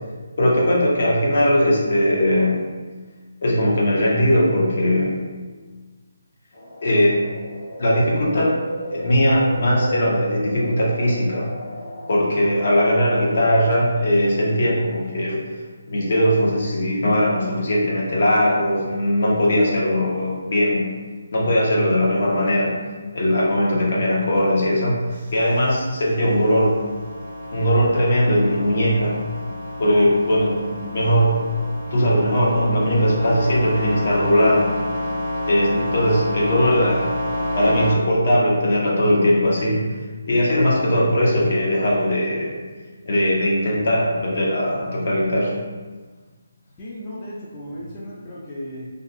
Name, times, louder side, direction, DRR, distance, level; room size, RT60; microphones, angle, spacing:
voice 1, 0.4-2.6 3.4-5.1 6.8-7.2 7.8-8.6 8.9-11.5 12.1-15.4 15.9-20.9 21.3-22.8 23.1-25.0 25.3-26.8 27.5-29.2 29.8-31.5 31.9-34.7 35.5-37.0 37.5-39.8 40.3-42.5 43.1-45.5, equal, 55° left, -4 dB, 0.7 m, -19 dB
sound 1, 6.5-12.2, right 1 dB, 90° left, 0.8 m, -33 dB
sound 2, 25.1-37.9, left 1 dB, 30° right, 0.5 m, -30 dB
voice 2, 46.8-48.9, equal, 25° left, -7 dB, 0.4 m, -35 dB
2.4 x 2.3 x 2.5 m, 1.4 s
hypercardioid pair, 160°, 0 cm